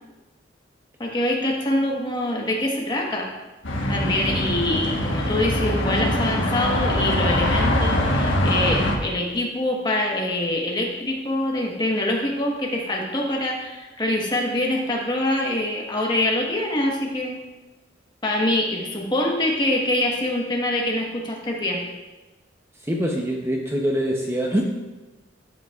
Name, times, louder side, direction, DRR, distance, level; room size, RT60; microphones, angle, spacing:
voice 1, 1.0-3.3 3.9-17.4 18.2-21.8, left 1 dB, 25° left, 0 dB, 1.2 m, -24 dB
sound 1, 3.6-9.0, left 1 dB, 85° left, 1.3 m, -22 dB
voice 2, 22.8-24.6, equal, 15° right, 0 dB, 0.7 m, -24 dB
12.5 x 7.9 x 2.4 m, 1.1 s
head